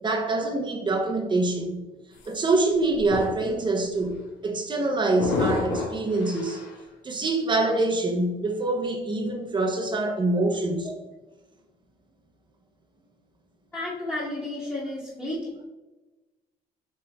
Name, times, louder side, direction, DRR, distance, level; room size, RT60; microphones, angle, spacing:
voice 1, 0.0-1.8 2.3-6.6 7.0-10.9, right 2 dB, 25° right, 2 dB, 0.6 m, -25 dB
sound 1, 2.2-2.3 2.9-3.6 3.9-4.2 5.2-6.8, left 3 dB, 80° left, 1.0 m, -30 dB
voice 2, 13.7-15.5, left 1 dB, 10° left, -8 dB, 1.2 m, -32 dB
7.5 x 3.1 x 2.2 m, 1.1 s
cardioid pair, 110°, 17 cm